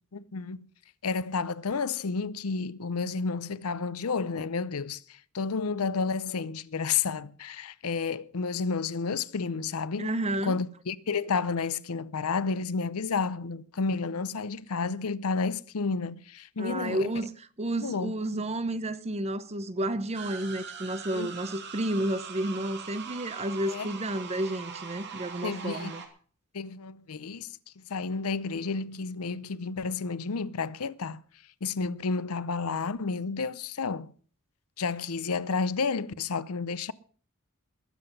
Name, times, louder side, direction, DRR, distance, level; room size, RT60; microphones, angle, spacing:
voice 1, 0.1-0.7 1.0-10.1 10.4-17.1 17.8-18.1 21.1-21.3 23.7-23.9 25.4-26.0 26.5-27.5 27.9-31.2 31.6-34.1 34.8-36.9, left 4 dB, 75° left, 0.7 m, -31 dB
voice 2, 10.0-10.6 16.6-26.0, right 1 dB, 30° right, 0.8 m, -31 dB
sound 1, 20.1-26.1, right 6 dB, 50° right, 2.5 m, -42 dB
20.5 x 7.9 x 5.4 m
head